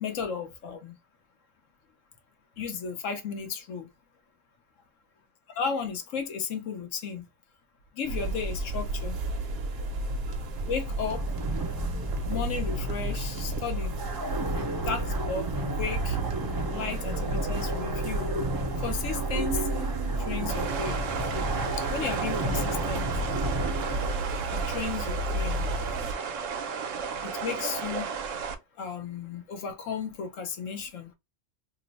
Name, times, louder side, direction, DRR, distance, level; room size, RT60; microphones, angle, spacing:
voice 1, 0.0-0.9 2.6-3.9 5.5-7.2 8.0-9.2 10.7-11.2 12.3-13.9 14.9-16.2 16.7-18.3 18.8-19.9 20.3-21.0 21.8-23.1 24.5-25.7 27.2-28.1 28.8-31.1, left 6 dB, 85° left, 1.1 m, -34 dB
sound 1, 8.0-26.1, right 2 dB, 60° right, 0.8 m, -32 dB
sound 2, 10.1-24.1, right 1 dB, 35° right, 0.3 m, -33 dB
sound 3, 20.5-28.5, right 6 dB, 85° right, 1.0 m, -34 dB
3.0 x 2.0 x 4.0 m
omnidirectional pair, 1.3 m